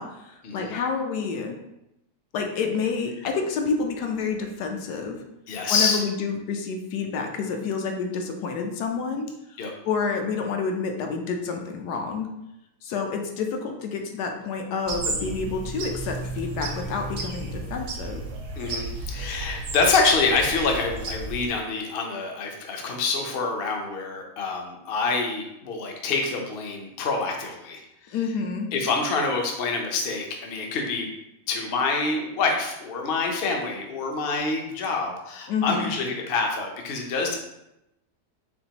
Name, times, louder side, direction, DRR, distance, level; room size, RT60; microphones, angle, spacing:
voice 1, 0.0-1.6 2.3-5.2 5.7-9.6 9.8-12.3 12.8-18.2 28.1-28.7 35.5-35.9, left 5 dB, 75° left, 3 dB, 1.2 m, -29 dB
voice 2, 5.5-6.0 9.6-9.7 18.6-27.8 28.7-31.1 31.5-37.4, left 4 dB, 55° left, 1 dB, 0.7 m, -26 dB
sound 1, 14.9-21.5, right 2 dB, 70° right, 1.3 m, -33 dB
4.3 x 3.9 x 2.9 m, 0.86 s
omnidirectional pair, 1.8 m